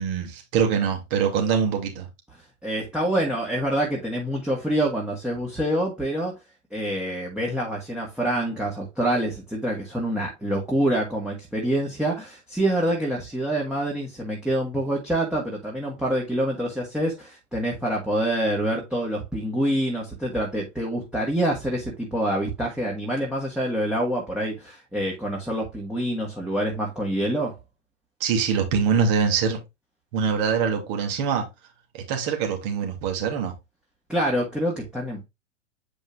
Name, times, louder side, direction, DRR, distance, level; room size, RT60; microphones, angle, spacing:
voice 1, 0.0-2.1 28.2-29.6 30.1-31.4 31.9-33.5, right 6 dB, 45° right, 2.6 m, -24 dB
voice 2, 2.6-6.4 6.7-27.6 34.1-35.2, right 1 dB, ahead, 1.7 m, -26 dB
8.0 x 5.3 x 2.4 m
figure-of-eight pair, 100°, 37 cm